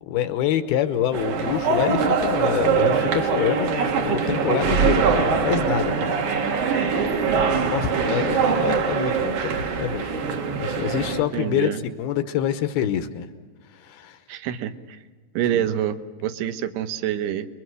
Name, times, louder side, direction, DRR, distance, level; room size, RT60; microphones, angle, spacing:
voice 1, 0.0-6.2 7.5-10.3 10.5-13.3 13.7-14.2 15.5-15.7, left 10 dB, 75° left, 9 dB, 2.7 m, -26 dB
sound 1, 1.1-11.3, right 5 dB, 55° right, 2.7 m, -23 dB
voice 2, 11.3-11.8 14.3-15.0 15.3-17.5, right 10 dB, 80° right, 10 dB, 3.0 m, -27 dB
29.5 x 22.0 x 6.4 m, 1.4 s
omnidirectional pair, 4.8 m